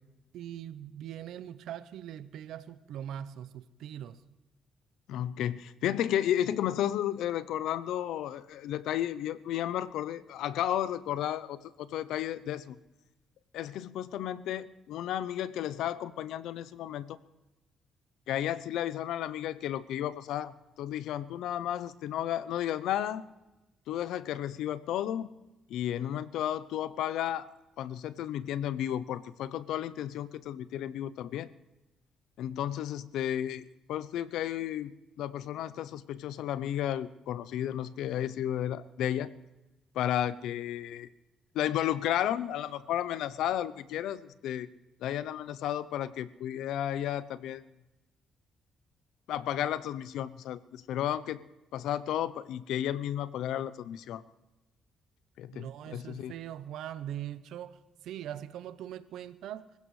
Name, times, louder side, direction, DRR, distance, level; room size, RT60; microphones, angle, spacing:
voice 1, 0.3-4.2 55.5-59.7, right 11 dB, 80° right, 14 dB, 0.7 m, -41 dB
voice 2, 5.1-12.8 13.5-17.2 18.3-23.2 23.9-25.3 25.7-27.5 27.8-31.5 32.4-33.6 33.9-34.9 35.2-39.3 39.9-41.1 41.5-44.7 45.0-47.6 49.3-51.4 51.7-54.2 55.4-56.3, left 11 dB, 85° left, 16 dB, 0.6 m, -33 dB
25.0 x 16.0 x 3.2 m, 1.0 s
cardioid pair, 90°, 0 cm